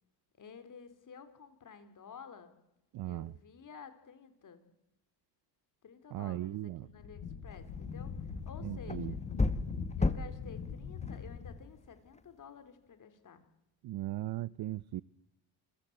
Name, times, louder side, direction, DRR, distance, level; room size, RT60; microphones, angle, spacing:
voice 1, 0.4-2.5 3.0-4.7 5.8-9.2 10.0-13.5, left 6 dB, 45° left, 3.7 m, -52 dB
voice 2, 2.9-3.3 6.1-6.9 8.6-9.1 13.8-15.0, right 15 dB, 55° right, 0.7 m, -37 dB
Wind, 6.8-11.6, left 6 dB, 80° left, 7.7 m, -42 dB
sound 1, 7.5-12.3, left 3 dB, 15° left, 1.4 m, -37 dB
27.0 x 16.0 x 8.0 m
cardioid pair, 95°, 44 cm